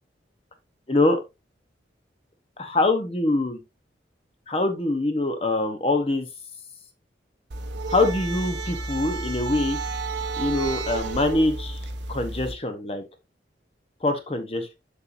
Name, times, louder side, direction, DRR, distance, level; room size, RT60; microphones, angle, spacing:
voice 1, 0.9-1.2 2.6-3.6 4.5-6.3 7.9-9.8 10.4-11.8 12.1-13.0 14.0-14.8, left 2 dB, 30° left, 7 dB, 0.9 m, -24 dB
sound 1, 7.5-12.5, right 3 dB, 75° right, 0.7 m, -31 dB
7.0 x 6.6 x 2.6 m, 0.24 s
head